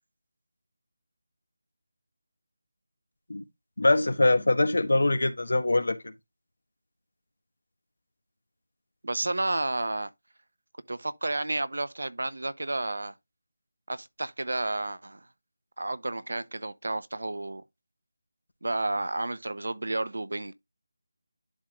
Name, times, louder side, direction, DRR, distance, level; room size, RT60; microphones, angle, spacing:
voice 1, 3.8-6.0, left 2 dB, 85° left, 1.4 m, -23 dB
voice 2, 9.0-10.1 10.9-13.1 13.9-15.2 15.8-17.6 18.6-20.5, right 2 dB, 80° right, 0.9 m, -31 dB
11.0 x 3.8 x 3.0 m
figure-of-eight pair, 180°, 0 cm